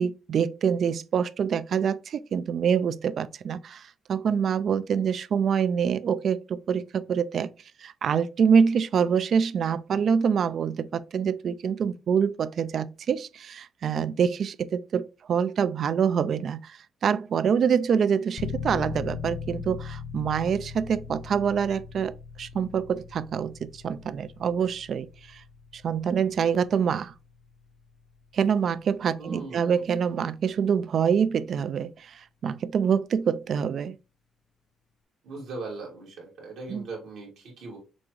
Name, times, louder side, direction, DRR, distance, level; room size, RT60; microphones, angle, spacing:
voice 1, 0.0-7.5 7.8-25.4 25.7-27.1 28.3-34.0 36.7-36.9, right 7 dB, 60° right, 0.3 m, -26 dB
sound 1, 18.4-28.9, left 6 dB, 65° left, 0.3 m, -40 dB
voice 2, 29.2-29.8 35.2-37.8, right 3 dB, 85° right, 2.0 m, -39 dB
6.1 x 2.4 x 3.1 m
cardioid pair, 90°, 0 cm